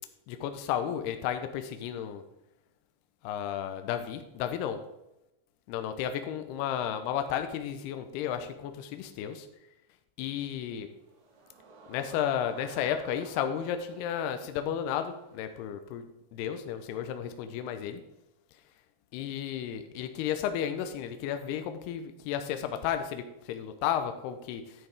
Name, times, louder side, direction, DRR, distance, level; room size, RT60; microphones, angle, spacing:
voice 1, 0.3-2.2 3.2-4.8 5.7-9.5 10.2-10.9 11.9-18.0 19.1-24.6, left 9 dB, 85° left, 8 dB, 2.4 m, -33 dB
sound 1, 10.8-15.6, right 4 dB, 60° right, 2.0 m, -54 dB
10.5 x 9.6 x 3.4 m, 0.90 s
omnidirectional pair, 5.3 m